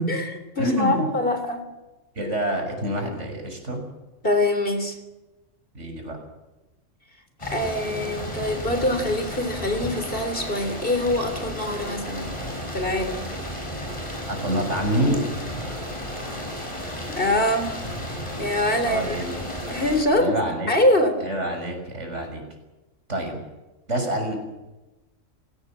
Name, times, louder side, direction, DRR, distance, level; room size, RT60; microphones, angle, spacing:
voice 1, 0.0-1.7 4.2-5.0 7.4-12.3 12.7-13.2 17.1-17.7 18.4-19.4 19.7-20.3 20.7-21.2, left 1 dB, 45° left, 8 dB, 3.7 m, -24 dB
voice 2, 0.6-1.0 2.2-3.8 5.7-6.2 14.3-15.3 18.9-19.2 20.1-20.7 21.2-22.4 23.1-23.4 23.9-24.4, right 1 dB, 65° right, 4 dB, 6.6 m, -26 dB
sound 1, 7.4-20.0, equal, 25° left, 7.0 m, -33 dB
29.0 x 17.5 x 7.5 m, 1.1 s
omnidirectional pair, 1.3 m